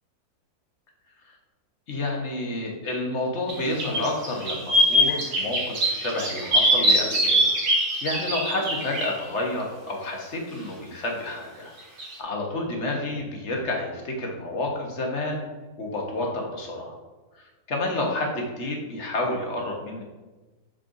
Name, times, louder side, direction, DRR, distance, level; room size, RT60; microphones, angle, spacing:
voice 1, 1.9-7.6 8.0-11.7 12.2-15.5 15.8-17.0 17.4-20.0, left 2 dB, 50° left, 0 dB, 1.4 m, -30 dB
sound 1, 3.5-3.6 3.8-9.1 12.0-12.1, equal, 75° right, 2.1 m, -22 dB
7.4 x 6.4 x 2.6 m, 1.2 s
omnidirectional pair, 1.7 m